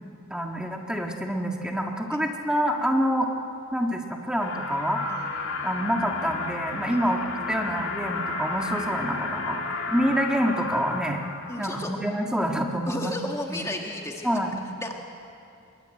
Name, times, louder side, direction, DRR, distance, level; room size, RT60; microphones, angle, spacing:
voice 1, 0.3-3.3 3.7-5.0 5.6-7.2 7.5-11.2 11.6-13.1 13.5-13.6 14.2-14.7, equal, 5° right, 1 dB, 1.7 m, -27 dB
sound 1, 4.4-11.9, left 3 dB, 65° left, 2.8 m, -32 dB
voice 2, 6.9-7.2 11.5-11.9 12.8-14.4 14.8-14.9, left 1 dB, 15° left, 1 dB, 1.6 m, -34 dB
24.5 x 22.0 x 9.0 m, 2.6 s
head